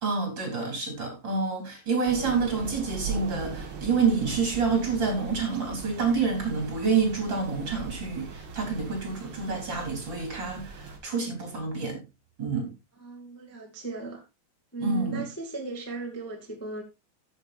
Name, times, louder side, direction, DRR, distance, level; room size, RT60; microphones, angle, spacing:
voice 1, 0.0-12.0 12.4-12.7 14.8-15.3, right 5 dB, 25° right, 3.8 m, -28 dB
Thunder / Rain, 2.1-11.0, right 4 dB, 70° right, 1.2 m, -40 dB
voice 2, 13.0-14.2 14.7-16.8, right 3 dB, 10° left, 0.7 m, -36 dB
14.5 x 8.0 x 2.6 m
omnidirectional pair, 5.2 m